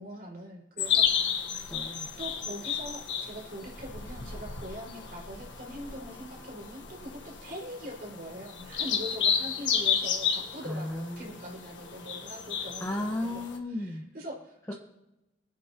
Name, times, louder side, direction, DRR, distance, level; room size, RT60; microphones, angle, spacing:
voice 1, 0.0-1.4 2.2-13.3 13.7-14.7, equal, 50° right, -3 dB, 5.6 m, -42 dB
sound 1, 0.8-13.6, left 7 dB, 90° left, 1.4 m, -32 dB
voice 2, 1.5-2.1 10.6-11.4 12.8-14.0 14.7-14.8, left 1 dB, 15° left, -2 dB, 1.3 m, -35 dB
24.5 x 9.7 x 3.0 m, 0.91 s
head